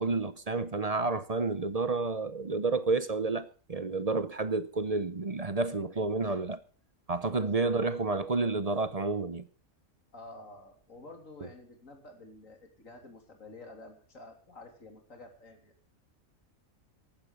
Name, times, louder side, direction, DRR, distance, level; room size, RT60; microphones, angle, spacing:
voice 1, 0.0-6.6 7.1-9.4, right 3 dB, 35° right, 0.7 m, -30 dB
voice 2, 7.3-7.7 10.1-15.7, left 2 dB, 80° left, 3.5 m, -50 dB
15.0 x 11.5 x 5.2 m
omnidirectional pair, 1.4 m